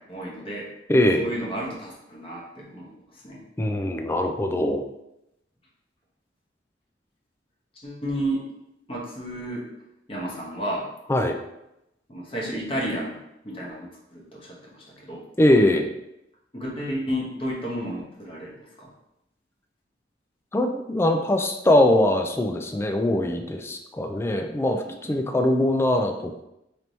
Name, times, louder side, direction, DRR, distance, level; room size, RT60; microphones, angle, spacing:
voice 1, 0.1-0.7 1.2-3.0 3.2-3.4 7.8-8.5 8.9-9.7 10.1-10.9 12.1-15.2 16.5-18.9 24.8-25.1, equal, 30° left, -4 dB, 1.1 m, -32 dB
voice 2, 0.9-1.3 3.6-4.8 11.1-11.4 15.4-15.9 20.5-26.4, left 1 dB, 15° left, 4 dB, 0.3 m, -22 dB
3.3 x 2.9 x 4.0 m, 0.86 s
head